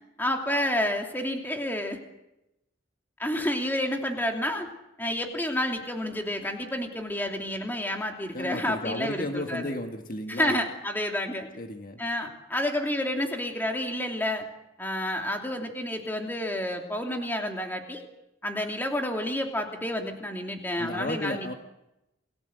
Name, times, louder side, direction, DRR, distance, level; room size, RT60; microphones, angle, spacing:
voice 1, 0.2-2.0 3.2-4.7 5.0-9.7 10.3-11.5 12.0-14.5 14.8-18.1 18.4-21.5, left 1 dB, 10° left, 3 dB, 2.9 m, -30 dB
voice 2, 8.3-10.6 11.6-12.0 20.8-21.5, left 1 dB, 45° left, 5 dB, 1.6 m, -33 dB
29.0 x 18.5 x 8.0 m, 0.90 s
head